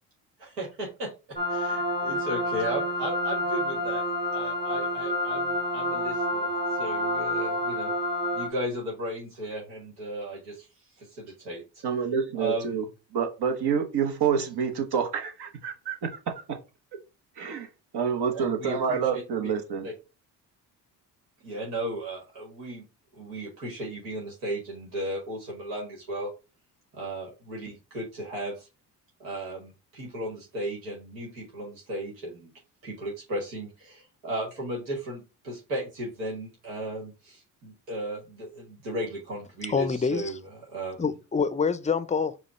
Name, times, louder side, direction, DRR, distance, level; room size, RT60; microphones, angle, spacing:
voice 1, 0.4-4.0 4.3-7.9 8.3-10.7 11.0-11.8 12.3-12.8 18.3-19.5 19.8-19.9 21.4-22.8 23.1-26.3 26.9-28.7 29.2-32.5 32.8-40.4 40.7-41.1, right 1 dB, 85° right, 1.6 m, -35 dB
sound 1, 1.4-8.5, left 1 dB, 20° right, 1.2 m, -28 dB
voice 2, 11.8-12.9 13.1-16.6 17.4-17.7 17.9-19.9, right 7 dB, 60° right, 1.2 m, -28 dB
voice 3, 39.7-40.4 41.0-42.4, left 5 dB, 15° left, 0.5 m, -26 dB
4.9 x 2.4 x 4.3 m
hypercardioid pair, 55°, 43 cm